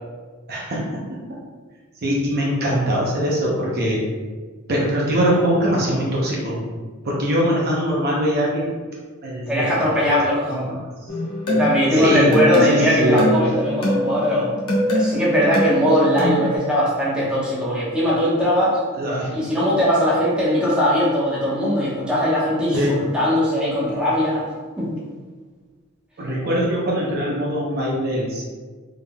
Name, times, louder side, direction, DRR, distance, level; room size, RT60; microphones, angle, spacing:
voice 1, 0.5-1.2 2.0-4.0 4.7-6.6 7.0-8.7 9.2-10.7 11.9-12.4 12.6-13.3 18.9-19.3 22.7-23.0 26.2-28.4, equal, 50° right, -4 dB, 0.7 m, -22 dB
voice 2, 9.5-10.4 11.5-14.5 14.9-18.8 19.3-24.5 24.8-24.9, equal, 5° right, -8 dB, 1.0 m, -20 dB
sound 1, 11.1-16.6, equal, 75° left, 1.1 m, -23 dB
3.7 x 3.5 x 2.2 m, 1.4 s
head